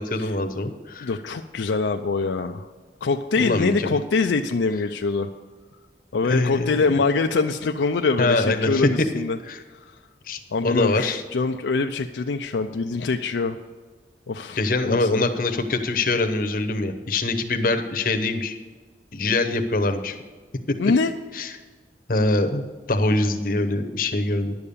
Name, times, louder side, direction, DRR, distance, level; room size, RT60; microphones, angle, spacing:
voice 1, 0.0-1.1 3.4-4.0 6.2-7.0 8.2-8.9 9.5-9.6 10.3-11.2 14.6-18.6 19.1-20.2 21.3-21.5 22.1-24.5, left 2 dB, 50° left, 6 dB, 0.8 m, -24 dB
voice 2, 1.0-2.7 3.0-5.3 6.1-9.4 10.5-13.6 14.3-14.6 14.9-15.2 20.8-21.1, left 4 dB, 80° left, 6 dB, 0.5 m, -24 dB
11.0 x 7.1 x 6.8 m, 1.4 s
head